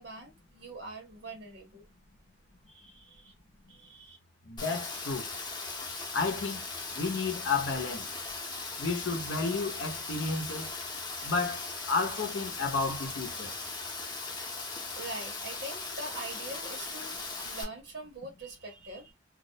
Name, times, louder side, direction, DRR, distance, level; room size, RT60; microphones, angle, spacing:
voice 1, 0.0-1.9 2.7-3.3 3.7-4.2 15.0-19.1, right 2 dB, 70° right, 0.8 m, -43 dB
voice 2, 4.5-5.3 6.1-6.6 6.9-8.1 8.8-10.7 11.2-13.5, left 4 dB, 70° left, 0.6 m, -32 dB
Rain, 4.6-17.6, left 3 dB, 25° left, 0.6 m, -39 dB
2.3 x 2.0 x 2.7 m
head